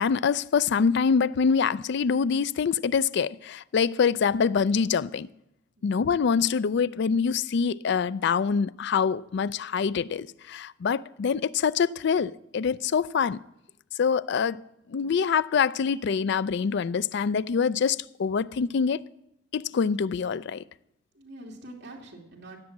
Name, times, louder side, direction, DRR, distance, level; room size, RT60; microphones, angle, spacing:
voice 1, 0.0-5.3 5.8-13.4 14.0-14.6 14.9-19.0 19.5-20.6, left 6 dB, 60° left, 0.4 m, -25 dB
voice 2, 5.8-6.1 21.1-22.6, right 1 dB, 60° right, 2.5 m, -45 dB
16.5 x 7.6 x 7.2 m
head